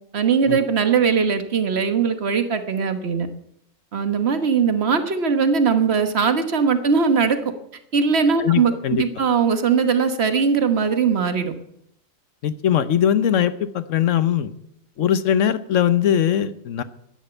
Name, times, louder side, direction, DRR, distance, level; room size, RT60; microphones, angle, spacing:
voice 1, 0.1-3.3 3.9-7.4 7.9-11.5, right 6 dB, 55° right, 9 dB, 1.5 m, -20 dB
voice 2, 8.4-9.0 12.4-14.5 15.0-16.8, left 9 dB, 70° left, 14 dB, 1.2 m, -20 dB
12.5 x 10.0 x 8.2 m, 0.76 s
omnidirectional pair, 1.4 m